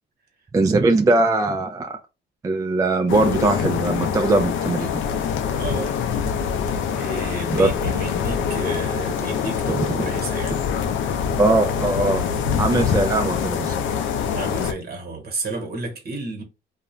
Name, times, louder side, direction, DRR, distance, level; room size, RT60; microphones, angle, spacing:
voice 1, 0.5-2.0 2.4-4.9 7.5-7.7 9.7-10.0 11.4-12.3 12.6-13.8, right 2 dB, 15° right, 0.3 m, -20 dB
sound 1, 3.1-14.7, left 7 dB, 75° left, 0.5 m, -24 dB
voice 2, 5.6-6.0 6.9-10.6 14.3-16.4, right 3 dB, 50° right, 1.2 m, -32 dB
2.4 x 2.2 x 3.0 m
cardioid pair, 90°, 20 cm